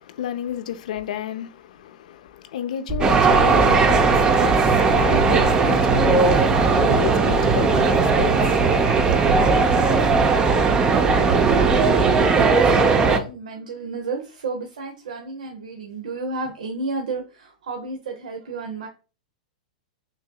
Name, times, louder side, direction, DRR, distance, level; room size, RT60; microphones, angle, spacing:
voice 1, 0.0-8.6 9.0-9.2, left 9 dB, 70° left, 0.6 m, -32 dB
sound 1, 2.9-12.3, right 3 dB, 40° right, 1.6 m, -29 dB
sound 2, 3.0-13.2, right 4 dB, 20° right, 0.6 m, -18 dB
voice 2, 10.9-18.9, right 3 dB, 85° right, 0.8 m, -32 dB
6.2 x 2.7 x 2.3 m
hypercardioid pair, 125°, 4 cm